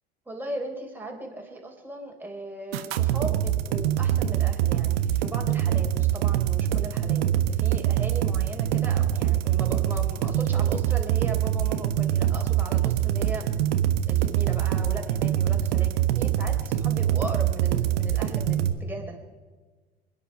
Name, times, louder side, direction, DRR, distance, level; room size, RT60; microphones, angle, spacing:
voice 1, 0.3-13.5 14.1-19.2, right 1 dB, 5° right, 0 dB, 3.7 m, -38 dB
sound 1, 2.7-18.7, right 11 dB, 65° right, 1.2 m, -24 dB
26.5 x 10.0 x 5.4 m, 1.4 s
hypercardioid pair, 80°, 32 cm